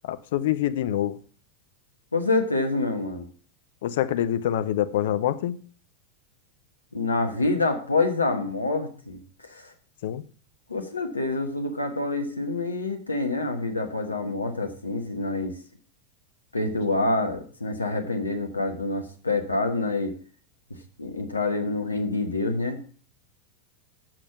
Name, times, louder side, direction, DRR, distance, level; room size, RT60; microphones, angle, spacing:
voice 1, 0.0-1.2 3.8-5.6 10.0-10.2, left 11 dB, 55° left, 0.6 m, -25 dB
voice 2, 2.1-3.3 6.9-9.7 10.7-15.5 16.5-20.1 21.0-22.8, left 2 dB, 80° left, 1.2 m, -27 dB
7.7 x 6.4 x 5.7 m
figure-of-eight pair, 90°, 0 cm